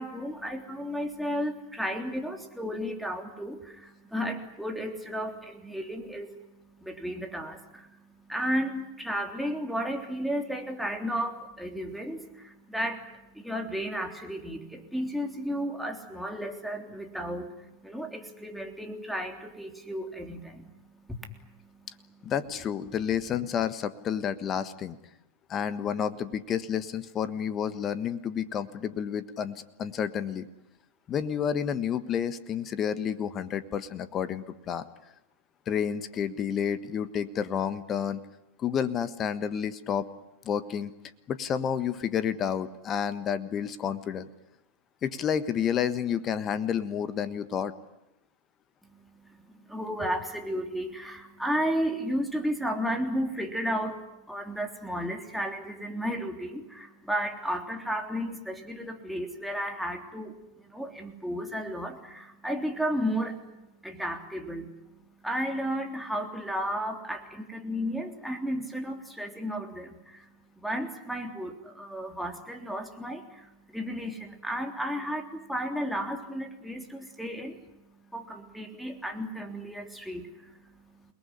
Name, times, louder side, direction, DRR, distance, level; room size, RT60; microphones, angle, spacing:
voice 1, 0.0-22.2 22.9-23.0 48.8-63.5 63.8-64.7 65.2-70.3 70.6-77.6 77.9-81.1, equal, ahead, 3 dB, 3.4 m, -33 dB
voice 2, 22.2-25.0 25.5-30.5 31.1-34.9 35.7-38.2 38.6-40.0 40.4-40.9 41.3-44.3 45.0-47.7, left 8 dB, 30° left, 14 dB, 1.4 m, -30 dB
29.0 x 19.5 x 9.9 m, 0.93 s
figure-of-eight pair, 90°, 0 cm